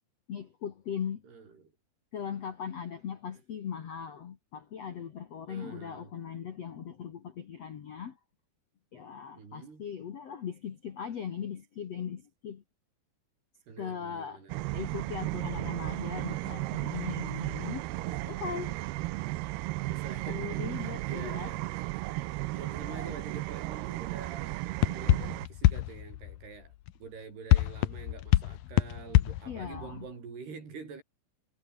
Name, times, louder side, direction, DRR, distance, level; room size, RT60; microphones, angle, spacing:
voice 1, 0.3-1.2 2.1-8.2 8.9-12.6 13.8-14.5 14.7-17.9 18.3-18.8 20.3-21.5 22.1-22.2 22.9-23.1 29.5-30.1, left 8 dB, 55° left, 1.9 m, -39 dB
voice 2, 1.2-1.6 5.5-6.1 9.4-9.9 13.7-14.6 18.0-18.8 19.9-21.6 22.5-31.0, right 5 dB, 60° right, 7.8 m, -46 dB
sound 1, 14.5-25.5, right 19 dB, 80° right, 2.5 m, -35 dB
sound 2, 22.8-23.2 24.8-26.9 27.5-30.0, left 15 dB, 75° left, 2.2 m, -27 dB
omnidirectional pair, 5.2 m